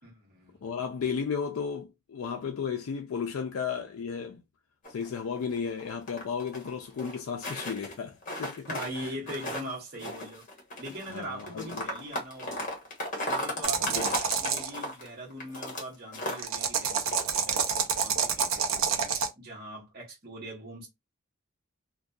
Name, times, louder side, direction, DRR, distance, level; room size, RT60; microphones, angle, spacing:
voice 1, 0.0-0.6 8.7-10.4 10.8-12.7 13.3-14.2 14.4-20.9, equal, 50° right, 0.9 m, -41 dB
voice 2, 0.6-4.4 4.9-8.7 9.0-9.1 11.1-11.9 13.8-14.1, left 6 dB, 75° left, 0.4 m, -34 dB
Footsteps on ice chunks, 4.8-6.7 7.0-7.9 8.2-9.7 10.0-15.8 16.1-16.4 16.8-17.2, left 1 dB, 40° left, 0.9 m, -35 dB
sound 1, 13.6-14.7 16.4-19.3, right 7 dB, 75° right, 0.5 m, -28 dB
2.6 x 2.2 x 2.3 m
head